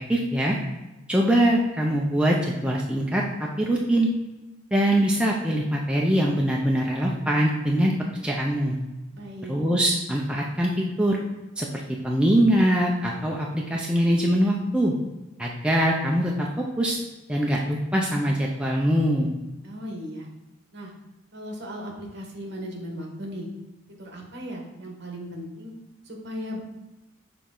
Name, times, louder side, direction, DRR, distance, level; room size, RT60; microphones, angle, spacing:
voice 1, 0.1-0.6 1.1-4.1 4.7-7.9 8.2-8.8 9.5-11.2 11.6-11.7 12.0-14.9 15.4-17.0 17.3-19.3, right 1 dB, 5° right, -2 dB, 0.5 m, -23 dB
voice 2, 9.1-9.5 19.6-20.3 20.7-20.9 21.3-23.5 23.9-25.7 26.1-26.6, equal, 55° right, 0 dB, 1.2 m, -37 dB
6.7 x 4.1 x 3.8 m, 1.0 s
head